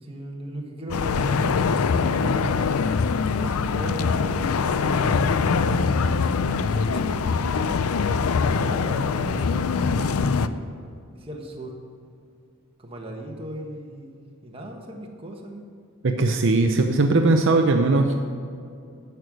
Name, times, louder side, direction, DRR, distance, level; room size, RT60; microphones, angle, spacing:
voice 1, 0.0-2.5 3.4-5.7 6.7-7.4 8.4-10.7 11.1-11.8 12.8-14.2 14.4-15.7, right 1 dB, 25° right, 0 dB, 1.5 m, -38 dB
sound 1, 0.9-10.5, left 5 dB, 90° left, 0.5 m, -23 dB
voice 2, 16.0-18.1, right 2 dB, 60° right, 4 dB, 0.7 m, -19 dB
11.0 x 8.3 x 6.2 m, 2.3 s
head